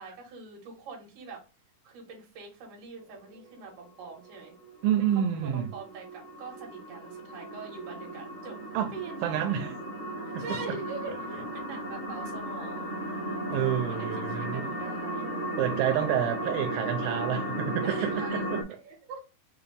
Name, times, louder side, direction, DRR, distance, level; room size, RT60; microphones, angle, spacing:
voice 1, 0.0-1.5 1.8-4.5 5.1-8.6 8.9-9.9 10.2-13.5 13.9-15.3 17.8-18.4 18.7-19.2, right 4 dB, 65° right, 2.9 m, -43 dB
sound 1, 3.3-18.6, right 1 dB, 70° left, 0.4 m, -36 dB
voice 2, 4.8-5.7 8.7-8.9 9.2-9.7 10.3-10.6 13.5-14.7 15.6-18.6, right 10 dB, 90° right, 2.4 m, -28 dB
6.1 x 2.5 x 3.3 m
omnidirectional pair, 4.0 m